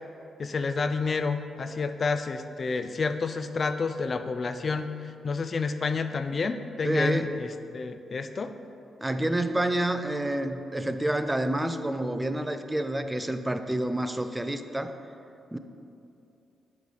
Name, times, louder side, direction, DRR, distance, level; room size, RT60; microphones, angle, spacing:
voice 1, 0.4-7.5 7.7-8.5, left 4 dB, 50° left, 9 dB, 0.4 m, -29 dB
voice 2, 6.8-7.3 9.0-15.0 15.5-15.6, right 1 dB, 15° right, 9 dB, 0.4 m, -28 dB
7.7 x 3.2 x 5.6 m, 2.8 s
supercardioid pair, 55°, 0 cm